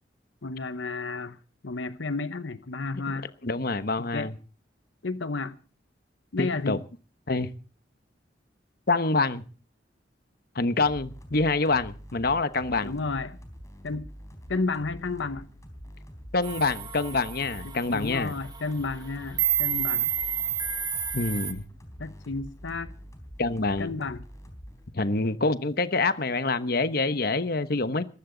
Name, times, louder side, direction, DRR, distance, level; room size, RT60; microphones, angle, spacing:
voice 1, 0.4-1.4 1.6-3.3 4.0-4.3 5.0-5.6 6.3-6.8 12.8-13.4 13.8-14.1 14.5-15.5 17.6-20.1 22.0-22.9 23.8-24.2, left 3 dB, 80° left, 0.9 m, -32 dB
voice 2, 3.4-4.3 6.4-6.8 7.3-7.5 8.9-9.4 10.5-12.9 16.3-18.3 21.1-21.6 23.4-23.9 24.9-28.1, left 3 dB, 55° left, 1.1 m, -26 dB
sound 1, 10.8-24.9, equal, 15° left, 3.7 m, -45 dB
sound 2, 16.4-21.5, right 9 dB, 25° right, 2.3 m, -30 dB
20.0 x 15.5 x 3.9 m
head